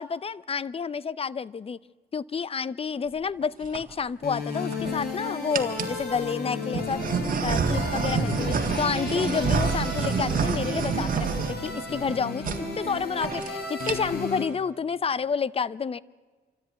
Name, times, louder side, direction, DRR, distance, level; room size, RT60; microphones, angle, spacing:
voice 1, 0.0-1.8 2.1-7.0 7.4-16.0, left 6 dB, 35° left, 20 dB, 0.6 m, -29 dB
sound 1, 3.4-3.8 4.5-5.1 5.5-6.0 6.7-12.1 12.4-12.6 12.9-13.0 13.2-13.5 13.8-14.3, right 5 dB, 55° right, 1.7 m, -28 dB
sound 2, 4.2-14.4, left 4 dB, 75° left, 4.6 m, -34 dB
sound 3, 6.3-13.0, equal, 90° left, 6.7 m, -44 dB
26.5 x 13.5 x 9.4 m, 1.4 s
cardioid pair, 80°, 17 cm